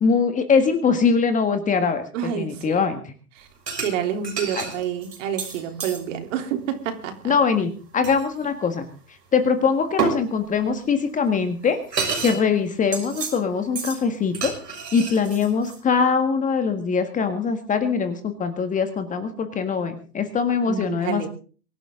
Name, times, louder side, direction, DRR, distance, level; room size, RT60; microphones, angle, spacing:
voice 1, 0.0-3.0 4.5-4.7 7.2-8.9 9.3-14.5 14.9-21.3, left 5 dB, 15° left, 8 dB, 1.8 m, -22 dB
voice 2, 2.1-2.8 3.4-3.5 3.8-7.3 20.6-21.3, right 9 dB, 50° right, 5 dB, 3.7 m, -28 dB
sound 1, 3.7-3.9 4.2-6.0 8.0-8.2 10.0-10.2 11.3-11.4 11.6-12.4 12.7-13.4 13.8-14.0 14.3-15.8, right 5 dB, 90° right, 6.3 m, -29 dB
24.0 x 12.0 x 3.9 m, 0.39 s
hypercardioid pair, 135°, 48 cm